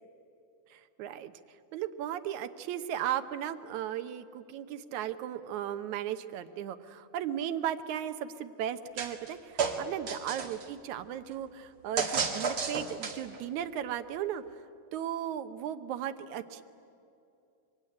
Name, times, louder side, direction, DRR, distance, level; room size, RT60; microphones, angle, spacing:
voice 1, 0.7-1.3 1.7-14.4 14.9-16.6, right 10 dB, 70° right, 8 dB, 1.8 m, -36 dB
sound 1, 9.0-9.3 9.6-10.7 12.0-13.4, right 5 dB, 45° right, 2.1 m, -32 dB
26.0 x 23.0 x 9.8 m, 2.6 s
omnidirectional pair, 4.4 m